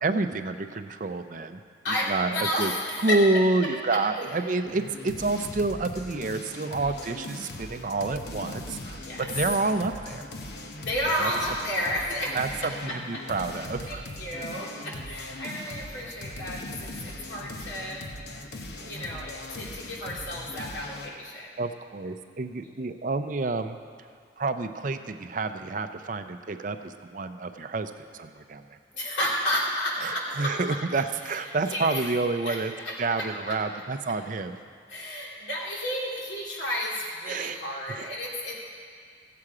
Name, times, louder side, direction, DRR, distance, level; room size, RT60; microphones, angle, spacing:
voice 1, 0.0-1.6 1.9-2.7 3.0-10.3 11.2-11.3 12.3-12.5 12.8-14.0 21.6-23.8 24.4-28.6 30.0-32.7 33.0-34.6 37.3-37.6 37.9-38.1, right 3 dB, 45° right, 9 dB, 0.5 m, -28 dB
voice 2, 1.8-3.2 3.9-4.0 6.8-6.9 9.0-9.3 10.8-12.4 13.9-18.0 18.8-21.5 28.9-30.8 31.2-32.1 32.4-32.6 32.8-33.2 34.9-38.6, equal, 85° left, -4 dB, 2.6 m, -32 dB
sound 1, 4.7-21.2, left 2 dB, 65° left, 0.8 m, -40 dB
15.0 x 7.7 x 4.9 m, 2.1 s
head